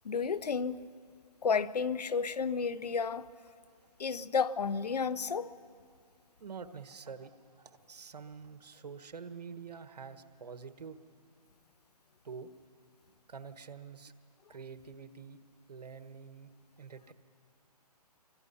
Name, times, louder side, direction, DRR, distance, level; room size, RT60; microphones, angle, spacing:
voice 1, 0.0-0.8 1.4-3.3 4.0-5.5, left 5 dB, 80° left, 16 dB, 0.9 m, -31 dB
voice 2, 6.4-11.0 12.2-12.5 13.3-14.1 14.5-15.4 15.7-16.5 16.8-17.1, right 6 dB, 80° right, 10 dB, 1.5 m, -47 dB
25.5 x 24.0 x 5.7 m, 2.2 s
hypercardioid pair, 160°, 20 cm